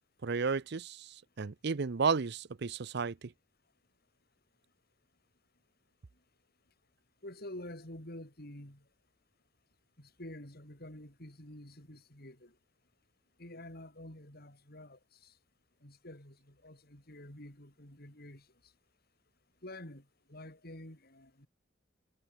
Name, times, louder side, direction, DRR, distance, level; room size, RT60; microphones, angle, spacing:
voice 1, 0.2-3.3, right 5 dB, 60° right, 0.6 m, -33 dB
voice 2, 7.2-8.8 10.0-12.5 13.4-15.3 15.8-18.5 19.6-21.5, left 1 dB, 55° left, 6.7 m, -49 dB
head